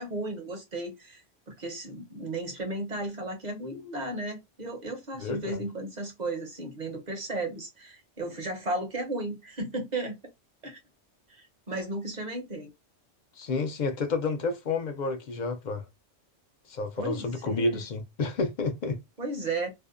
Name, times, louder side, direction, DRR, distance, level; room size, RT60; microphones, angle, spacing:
voice 1, 0.0-10.2 10.6-10.8 11.3-12.7 17.0-17.8 19.2-19.7, right 2 dB, 45° right, 0.7 m, -34 dB
voice 2, 5.2-5.6 13.4-15.8 16.7-19.0, left 3 dB, 60° left, 0.5 m, -30 dB
2.6 x 2.1 x 2.4 m
omnidirectional pair, 1.2 m